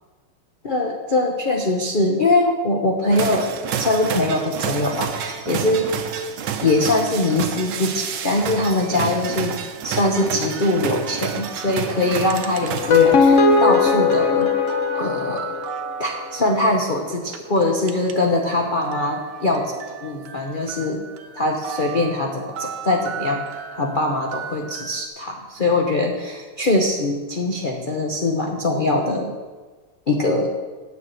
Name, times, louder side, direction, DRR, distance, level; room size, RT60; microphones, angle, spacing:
voice 1, 0.6-3.5 3.8-5.9 6.6-9.6 9.8-14.5 14.9-15.5 16.0-21.0 21.3-23.4 23.7-29.4 30.1-30.5, left 2 dB, 85° left, 0 dB, 0.4 m, -22 dB
sound 1, 3.1-13.5, right 7 dB, 65° right, 1.2 m, -29 dB
sound 2, 8.7-13.2 13.5-18.4 18.7-25.1, right 7 dB, 80° right, 1.6 m, -37 dB
sound 3, 12.7-15.8, left 4 dB, 55° left, 0.8 m, -18 dB
9.3 x 5.8 x 7.7 m, 1.4 s
omnidirectional pair, 2.4 m